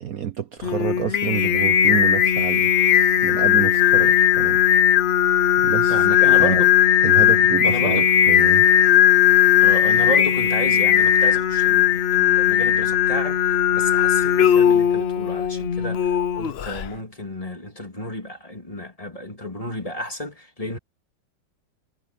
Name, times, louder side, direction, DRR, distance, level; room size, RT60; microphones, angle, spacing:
voice 1, 0.0-2.7 3.2-4.6 5.6-6.1 6.3-6.6 7.0-8.6, right 9 dB, 60° right, 1.2 m, -28 dB
Singing, 0.6-16.9, left 10 dB, 65° left, 0.6 m, -18 dB
voice 2, 5.9-6.7 7.2-7.4 7.6-8.1 9.6-20.8, left 1 dB, 20° left, 2.9 m, -31 dB
omnidirectional pair, 1.9 m